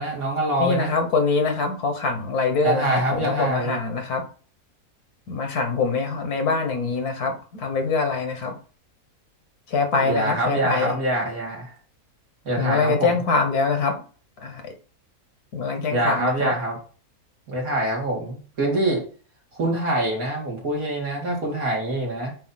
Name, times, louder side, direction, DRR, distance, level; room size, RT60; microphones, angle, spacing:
voice 1, 0.0-0.9 2.6-3.8 10.0-11.7 12.4-13.2 15.9-16.8 17.5-19.0 19.6-22.3, right 1 dB, 70° right, 2.7 m, -25 dB
voice 2, 0.6-4.2 5.3-8.5 9.7-10.9 12.6-13.9 14.4-14.6 15.5-16.5, left 4 dB, 80° left, 1.7 m, -24 dB
8.3 x 2.8 x 4.0 m
omnidirectional pair, 1.6 m